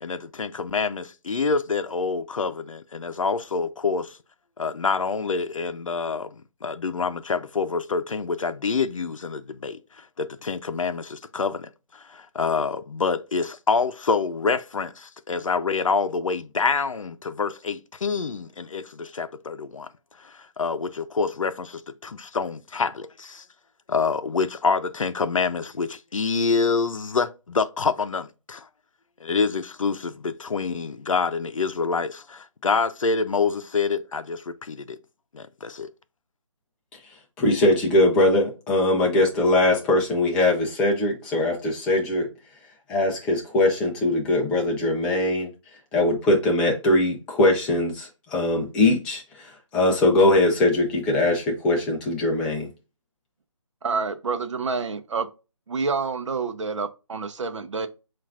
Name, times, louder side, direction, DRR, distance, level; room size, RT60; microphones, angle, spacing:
voice 1, 0.0-4.2 4.6-19.9 20.2-23.4 23.9-28.7 29.2-35.0 35.3-35.9, left 4 dB, 85° left, 0.5 m, -27 dB
voice 2, 37.4-42.3 42.9-45.5 45.9-52.7, left 2 dB, 5° left, 0.4 m, -21 dB
voice 3, 53.8-55.3 55.7-57.9, right 4 dB, 65° right, 0.7 m, -28 dB
7.2 x 2.5 x 2.4 m
figure-of-eight pair, 155°, 16 cm